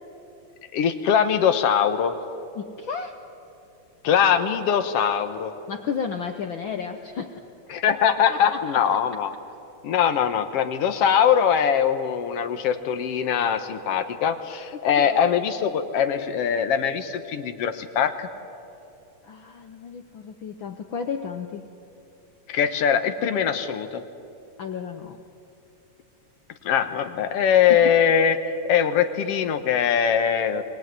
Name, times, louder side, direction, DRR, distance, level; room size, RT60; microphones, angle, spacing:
voice 1, 0.7-2.2 4.0-5.5 7.7-9.3 9.8-18.3 22.5-24.0 26.6-30.6, left 8 dB, 60° left, 9 dB, 1.9 m, -22 dB
voice 2, 2.6-3.2 5.7-7.4 7.9-8.0 8.3-8.6 14.7-15.2 19.2-21.7 24.6-25.2 27.7-27.9, left 6 dB, 80° left, 6 dB, 1.1 m, -33 dB
24.0 x 20.0 x 9.6 m, 2.7 s
omnidirectional pair, 3.5 m